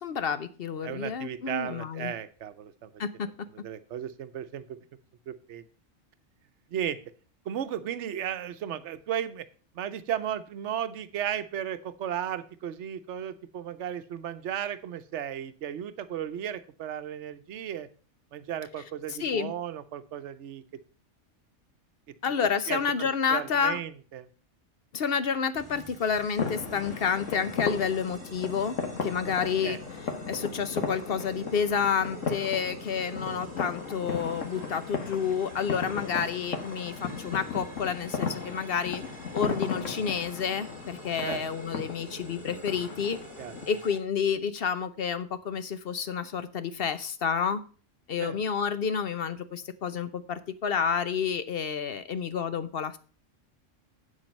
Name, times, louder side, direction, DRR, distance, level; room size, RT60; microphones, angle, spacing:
voice 1, 0.0-2.1 3.0-3.3 19.1-19.5 22.2-23.8 24.9-29.8 30.3-39.0 39.3-43.2 43.7-47.6 48.1-53.0, left 6 dB, 55° left, 12 dB, 0.9 m, -29 dB
voice 2, 0.8-2.9 3.6-4.6 5.3-5.6 6.7-7.0 7.5-9.5 9.7-17.9 18.3-20.6 22.7-24.3 29.6-29.8 41.2-41.4 43.4-43.6 48.2-48.4, right 10 dB, 70° right, 12 dB, 1.0 m, -35 dB
sound 1, 25.6-44.0, right 2 dB, 25° right, 1.4 m, -49 dB
sound 2, 26.4-43.7, left 5 dB, 80° left, 1.7 m, -36 dB
8.6 x 7.4 x 5.3 m, 0.37 s
omnidirectional pair, 1.3 m